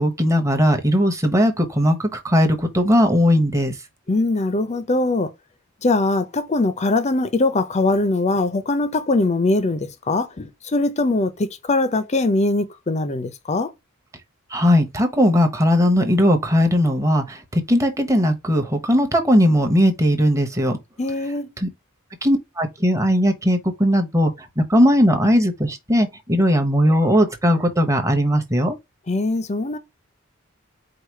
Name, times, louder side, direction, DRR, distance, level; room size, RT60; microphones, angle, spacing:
voice 1, 0.0-3.7 14.5-20.8 21.6-21.7 22.2-28.8, equal, 15° right, 0.9 m, -18 dB
voice 2, 4.1-5.3 5.8-13.7 21.0-21.5 29.1-29.8, left 2 dB, 35° left, 0.6 m, -21 dB
4.8 x 2.4 x 4.6 m
head